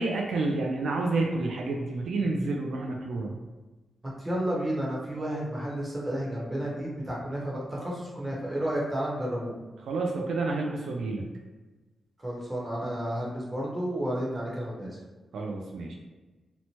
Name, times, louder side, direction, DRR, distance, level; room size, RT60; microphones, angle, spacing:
voice 1, 0.0-3.3 9.9-11.3 15.3-15.9, right 3 dB, 85° right, -1 dB, 0.3 m, -29 dB
voice 2, 4.2-9.5 12.2-15.0, right 1 dB, 20° right, -4 dB, 0.9 m, -31 dB
2.8 x 2.1 x 2.9 m, 1.2 s
cardioid pair, 95°, 0 cm